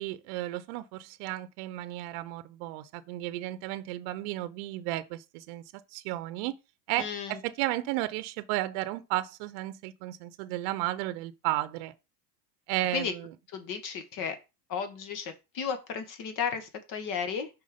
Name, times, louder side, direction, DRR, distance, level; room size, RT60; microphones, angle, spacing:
voice 1, 0.0-5.6 5.9-6.5 6.9-11.9 12.7-13.3, right 16 dB, 55° right, 0.8 m, -33 dB
voice 2, 7.0-7.4 12.9-13.1 13.5-14.4 14.7-17.5, left 6 dB, 40° left, 1.7 m, -34 dB
5.4 x 4.6 x 5.1 m
supercardioid pair, 140°, 47 cm